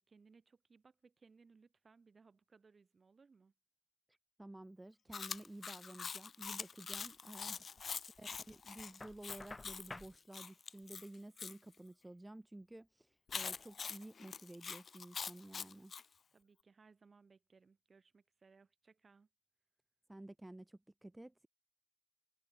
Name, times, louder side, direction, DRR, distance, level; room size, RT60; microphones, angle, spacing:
voice 1, 0.0-3.5 16.3-19.3, right 4 dB, 55° right, 7.7 m, -66 dB
voice 2, 4.1-7.6 8.2-15.9 20.1-21.5, right 1 dB, 15° right, 0.9 m, -53 dB
Chewing mastication, 5.1-11.5 13.3-16.0, left 6 dB, 75° left, 0.4 m, -45 dB
Knock, 9.0-10.2, left 2 dB, 25° left, 1.7 m, -51 dB
wide cardioid pair, 100°, 0 cm